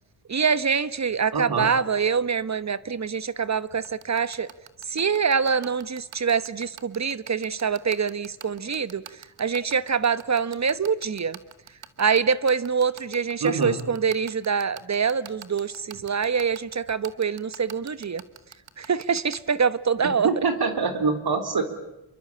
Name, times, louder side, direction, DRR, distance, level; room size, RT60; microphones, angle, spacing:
voice 1, 0.3-4.5 4.9-9.0 9.4-11.4 12.0-18.2 18.8-20.3, right 6 dB, 40° right, 16 dB, 1.1 m, -25 dB
voice 2, 1.3-1.7 13.4-13.8 20.0-21.6, right 4 dB, 55° right, 8 dB, 3.8 m, -25 dB
sound 1, 3.8-19.4, right 10 dB, 90° right, 1.7 m, -42 dB
28.0 x 23.5 x 8.7 m, 0.88 s
wide cardioid pair, 105°, 44 cm